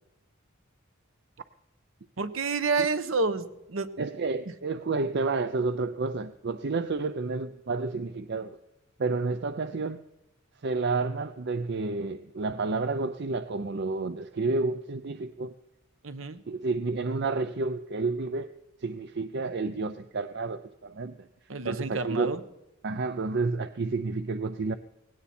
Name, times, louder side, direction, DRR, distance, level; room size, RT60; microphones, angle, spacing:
voice 1, 2.2-3.9 16.0-16.4 21.5-22.4, right 4 dB, 70° right, 1.1 m, -29 dB
voice 2, 4.0-8.6 9.0-10.0 10.6-15.5 16.5-18.5 18.8-21.3 21.6-22.3 22.8-24.8, right 3 dB, 55° right, 0.5 m, -30 dB
19.0 x 17.0 x 4.3 m
head